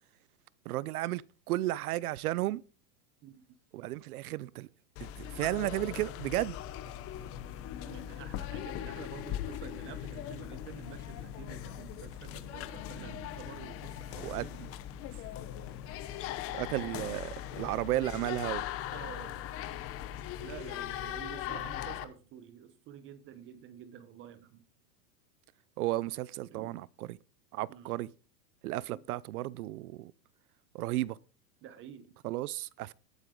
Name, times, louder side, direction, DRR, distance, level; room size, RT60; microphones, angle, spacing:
voice 1, 0.7-1.2 1.5-2.6 3.7-4.7 5.0-6.6 13.0-13.3 14.2-14.5 16.5-18.6 25.8-27.2 27.5-28.1 28.6-30.1 30.7-31.2 32.2-32.9, right 16 dB, 60° right, 0.6 m, -33 dB
sound 1, 5.0-22.1, left 12 dB, 25° left, 1.0 m, -40 dB
sound 2, 5.6-21.3, left 7 dB, 65° left, 5.5 m, -56 dB
sound 3, 7.2-17.2, left 6 dB, ahead, 3.3 m, -58 dB
voice 2, 7.8-14.6 16.5-17.1 18.9-19.4 20.4-24.6 26.5-26.8 27.7-28.0 28.9-29.0 31.6-32.1, right 9 dB, 25° right, 0.9 m, -49 dB
13.5 x 11.5 x 3.8 m
supercardioid pair, 145°, 50 cm